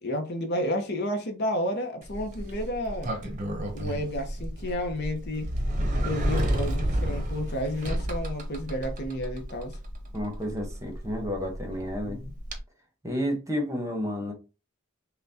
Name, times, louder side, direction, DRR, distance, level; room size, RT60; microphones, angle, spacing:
voice 1, 0.0-3.1 3.7-5.5 6.0-9.8 12.0-12.3, left 1 dB, 50° left, 0.8 m, -31 dB
Sliding door, 2.0-12.6, right 1 dB, 35° right, 0.8 m, -31 dB
voice 2, 10.1-12.2 13.0-14.3, equal, 15° right, 1.0 m, -31 dB
5.7 x 2.2 x 2.8 m
head